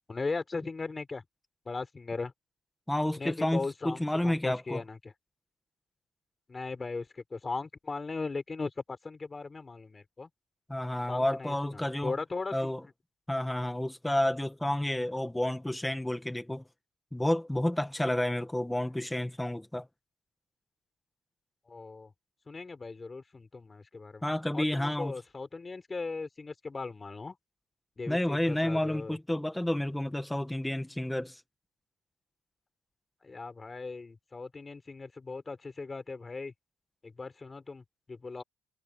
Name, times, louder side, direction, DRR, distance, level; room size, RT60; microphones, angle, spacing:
voice 1, 0.1-1.2 1.7-2.3 3.2-5.0 6.5-10.3 11.1-12.7 21.7-22.1 22.5-24.2 24.5-27.4 28.0-29.2 33.2-36.5 37.0-38.4, left 3 dB, 20° left, 4.2 m, -38 dB
voice 2, 2.9-4.8 10.7-12.1 12.5-12.8 13.3-16.6 17.1-19.9 24.2-25.2 28.1-31.4, left 1 dB, 5° left, 1.6 m, -30 dB
cardioid pair, 125°, 0 cm